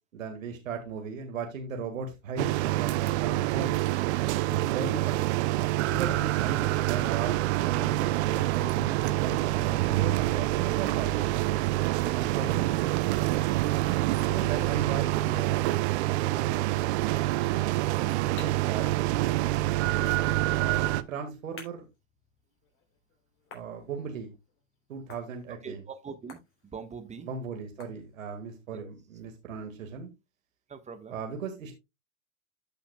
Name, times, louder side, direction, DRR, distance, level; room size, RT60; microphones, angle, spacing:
voice 1, 0.1-3.8 4.5-5.3 5.8-11.1 12.1-12.9 14.3-15.7 18.3-18.9 20.5-21.8 23.5-24.3 24.9-25.9 27.2-30.1 31.1-31.7, right 5 dB, 75° right, 4 dB, 2.1 m, -37 dB
sound 1, 2.4-21.0, right 16 dB, 55° right, 0.7 m, -26 dB
sound 2, 5.8-10.5, right 12 dB, 35° right, 1.3 m, -39 dB
voice 2, 14.3-14.7 25.6-26.4 26.7-27.3 28.7-28.9 30.7-31.2, right 5 dB, 15° right, 8 dB, 1.4 m, -42 dB
sound 3, 17.6-28.5, left 5 dB, 30° left, 3.5 m, -55 dB
14.0 x 5.8 x 2.3 m, 0.23 s
hypercardioid pair, 100°, 40 cm